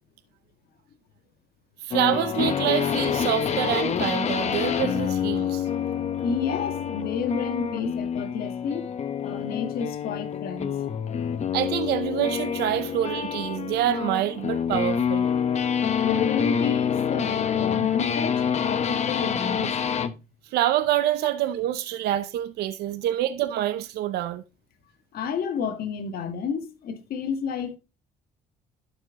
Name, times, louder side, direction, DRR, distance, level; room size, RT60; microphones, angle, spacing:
voice 1, 1.8-5.7 11.5-15.3 20.5-24.4, right 13 dB, 80° right, 0.7 m, -26 dB
sound 1, 1.9-20.2, left 7 dB, 40° left, 1.0 m, -27 dB
voice 2, 6.2-8.9 9.2-10.8 16.0-19.7 25.1-27.8, left 6 dB, 65° left, 1.6 m, -30 dB
12.0 x 5.3 x 3.7 m
cardioid pair, 110°, 17 cm